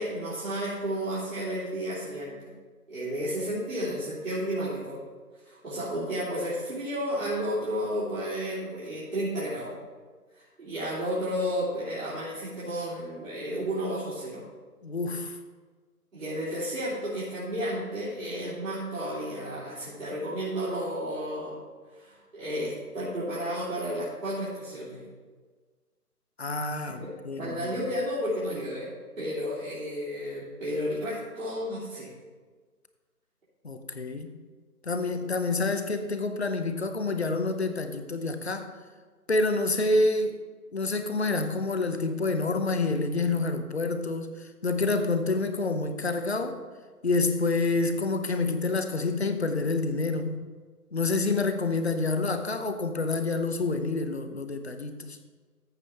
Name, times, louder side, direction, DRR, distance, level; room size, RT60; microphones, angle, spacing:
voice 1, 0.0-2.5 2.9-5.0 5.4-9.8 10.3-14.4 16.1-21.6 21.9-25.0 26.8-28.9 29.2-32.1, equal, 55° right, -10 dB, 3.3 m, -32 dB
voice 2, 14.8-15.4 26.4-27.7 33.6-34.3 34.8-38.7 39.3-40.4 40.7-46.6 47.0-50.4 50.9-55.2, left 3 dB, 45° left, 9 dB, 0.8 m, -28 dB
14.0 x 5.4 x 4.3 m, 1.4 s
figure-of-eight pair, 170°, 47 cm